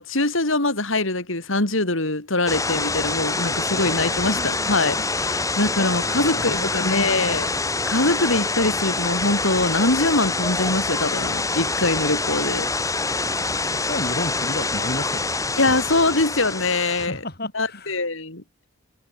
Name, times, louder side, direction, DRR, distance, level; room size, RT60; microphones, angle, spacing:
voice 1, 0.0-7.5 7.9-12.7 15.5-17.2 17.5-18.4, left 2 dB, 75° left, 4.4 m, -23 dB
sound 1, 2.5-17.1, left 3 dB, 15° left, 6.8 m, -25 dB
voice 2, 3.5-4.8 5.3-5.6 5.9-7.1 13.3-15.8 17.0-17.9, left 1 dB, 50° left, 5.0 m, -34 dB
head